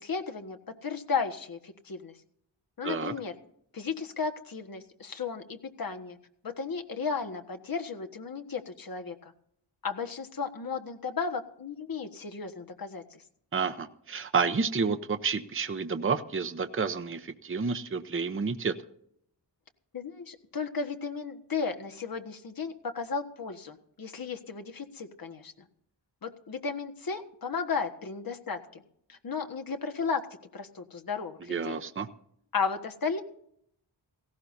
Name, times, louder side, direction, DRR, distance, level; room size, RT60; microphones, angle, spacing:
voice 1, 0.0-2.2 2.8-3.3 3.7-6.2 6.4-9.3 9.8-13.2 19.9-25.5 26.2-28.8 29.1-30.2 30.5-31.8 32.5-33.2, left 5 dB, 50° left, 5 dB, 1.5 m, -34 dB
voice 2, 13.5-18.7 31.5-32.1, right 5 dB, 30° right, 7 dB, 0.8 m, -30 dB
17.5 x 16.0 x 2.7 m, 0.69 s
cardioid pair, 70°, 44 cm